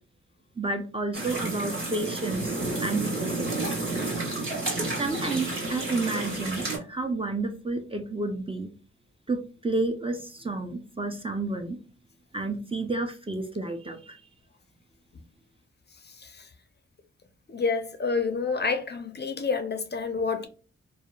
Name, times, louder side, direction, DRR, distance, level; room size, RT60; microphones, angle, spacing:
voice 1, 0.6-3.8 5.0-8.7 9.3-11.8 12.3-14.2, right 2 dB, 20° right, 0.5 m, -31 dB
sound 1, 1.1-6.8, right 2 dB, 45° right, 1.4 m, -31 dB
voice 2, 16.0-16.5 17.5-20.5, left 4 dB, 35° left, 0.5 m, -29 dB
2.7 x 2.1 x 2.2 m
cardioid pair, 50°, 29 cm